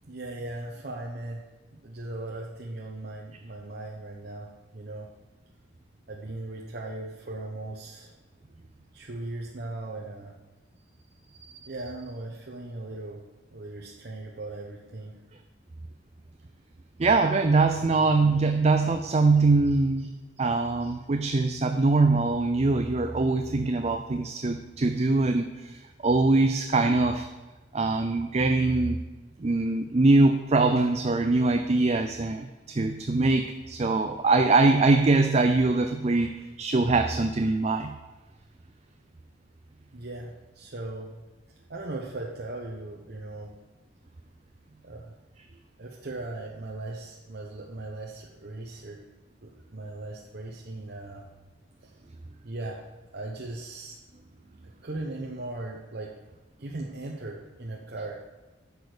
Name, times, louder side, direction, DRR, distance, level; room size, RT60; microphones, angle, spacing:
voice 1, 0.1-1.4 1.8-5.1 6.1-8.1 8.9-10.3 11.6-13.2 13.5-15.2 39.9-41.1 41.7-43.5 44.8-45.1 45.8-49.0 49.4-51.3 51.8-51.9 52.4-52.8 53.1-54.0 54.8-56.1 56.6-58.2, right 2 dB, 55° right, -2 dB, 1.0 m, -38 dB
voice 2, 17.0-20.1 20.4-27.3 27.7-29.0 29.4-37.9, right 3 dB, 35° right, 6 dB, 0.5 m, -23 dB
11.0 x 6.4 x 5.0 m, 1.2 s
head